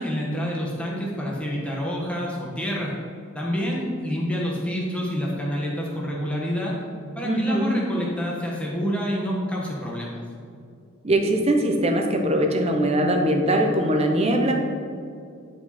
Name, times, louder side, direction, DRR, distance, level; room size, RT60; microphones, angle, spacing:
voice 1, 0.0-2.9 3.3-6.8 7.1-10.1, equal, 5° left, -4 dB, 1.4 m, -28 dB
voice 2, 7.2-7.8 11.0-14.5, right 1 dB, 30° right, 3 dB, 0.8 m, -21 dB
9.9 x 5.0 x 4.3 m, 2.4 s
head